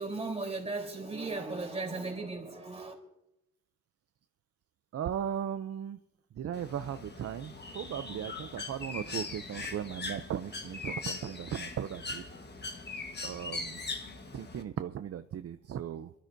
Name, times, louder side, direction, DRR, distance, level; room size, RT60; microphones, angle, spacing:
voice 1, 0.0-2.9, right 3 dB, 20° right, 3.5 m, -36 dB
voice 2, 4.9-6.0 6.3-12.3 13.2-13.8 14.3-16.1, right 9 dB, 55° right, 0.5 m, -37 dB
Bird, 6.5-14.6, left 3 dB, 35° left, 1.3 m, -41 dB
26.5 x 12.5 x 2.6 m
wide cardioid pair, 135°, 30 cm